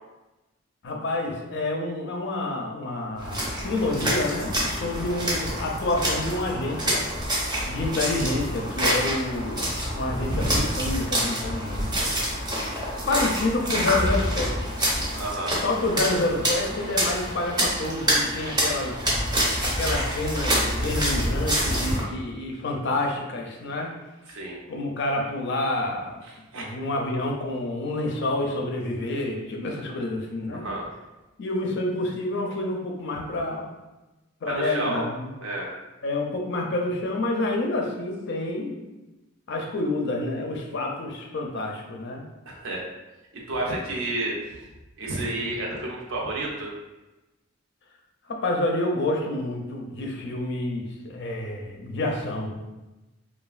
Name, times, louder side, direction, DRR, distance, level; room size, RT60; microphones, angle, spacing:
voice 1, 0.8-7.0 7.7-12.1 12.9-14.7 15.6-19.1 19.6-23.9 24.7-26.2 26.5-30.7 31.4-33.7 34.4-35.3 36.0-38.8 39.5-42.2 43.7-43.8 48.3-52.5, left 2 dB, 60° left, 1 dB, 0.4 m, -28 dB
sound 1, 3.2-22.0, equal, 20° right, 0.6 m, -27 dB
voice 2, 15.2-15.5 24.3-24.6 26.3-26.7 30.5-30.9 34.5-35.0 35.4-35.7 42.5-42.8 43.5-44.3 45.0-46.7, right 2 dB, 70° right, -2 dB, 0.6 m, -30 dB
3.1 x 2.2 x 2.3 m, 1.1 s
head